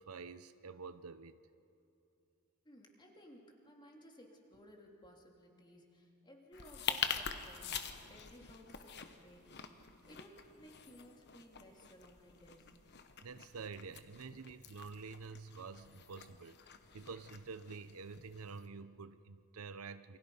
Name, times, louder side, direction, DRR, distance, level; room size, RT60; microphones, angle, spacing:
voice 1, 0.0-1.4 13.2-16.6 16.9-20.2, right 4 dB, 80° right, 13 dB, 0.7 m, -48 dB
voice 2, 2.6-12.8, equal, 20° left, 0 dB, 2.8 m, -59 dB
sound 1, 6.5-18.7, left 7 dB, 50° left, 1.2 m, -45 dB
28.0 x 24.5 x 5.5 m, 2.7 s
head